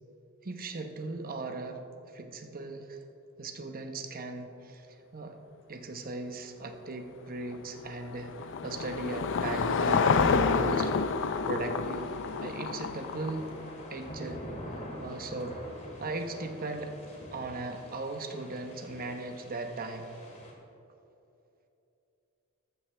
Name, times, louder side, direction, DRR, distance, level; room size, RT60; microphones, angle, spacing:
voice 1, 0.4-1.8 2.1-3.0 3.4-4.9 5.1-5.4 5.7-8.3 8.6-10.9 11.5-13.5 13.9-14.4 15.0-15.6 16.0-17.0 17.3-20.1, right 2 dB, 40° right, 6 dB, 0.9 m, -38 dB
Car passing by / Engine, 7.5-13.9, left 5 dB, 60° left, 0.5 m, -29 dB
sound 1, 11.8-20.5, equal, 30° left, 2.1 m, -45 dB
14.0 x 12.5 x 3.3 m, 2.9 s
head